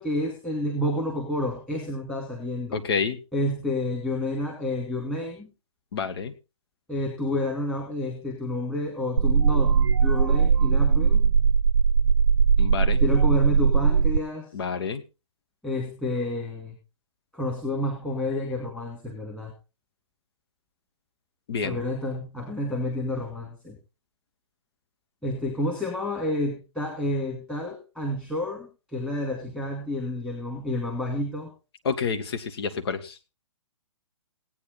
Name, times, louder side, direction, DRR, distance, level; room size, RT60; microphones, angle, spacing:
voice 1, 0.0-2.8 3.3-5.5 6.9-11.2 13.0-14.5 15.6-16.7 17.3-19.5 21.6-23.8 25.2-31.5, left 1 dB, 5° left, -3 dB, 2.5 m, -29 dB
voice 2, 2.7-3.2 5.9-6.3 12.6-13.0 14.5-15.0 21.5-21.8 31.8-33.1, left 5 dB, 50° left, 8 dB, 1.5 m, -28 dB
sound 1, 9.2-14.2, right 6 dB, 55° right, 0.6 m, -20 dB
17.5 x 9.1 x 4.1 m, 0.31 s
figure-of-eight pair, 125°, 17 cm